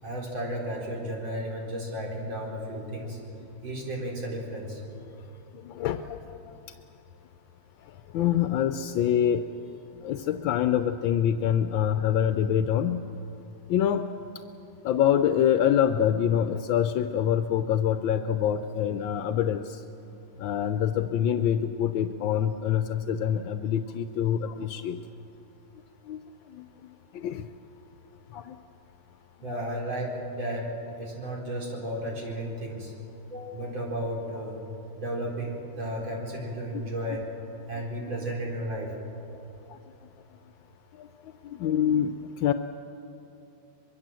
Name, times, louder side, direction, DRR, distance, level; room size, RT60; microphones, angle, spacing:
voice 1, 0.0-3.2 3.6-4.8 29.4-30.7 31.0-32.9 33.3-34.6 35.0-37.3 37.7-38.9, right 1 dB, 85° right, -1 dB, 4.7 m, -33 dB
voice 2, 5.5-6.6 7.8-13.1 13.7-14.1 14.8-19.8 20.4-25.0 26.1-26.2 26.5-26.6 27.1-27.5 28.3-28.6 29.5-29.6 39.7-39.8 40.9-41.1 41.4-42.5, left 9 dB, 80° left, 9 dB, 1.4 m, -26 dB
23.5 x 22.5 x 7.6 m, 2.8 s
omnidirectional pair, 2.1 m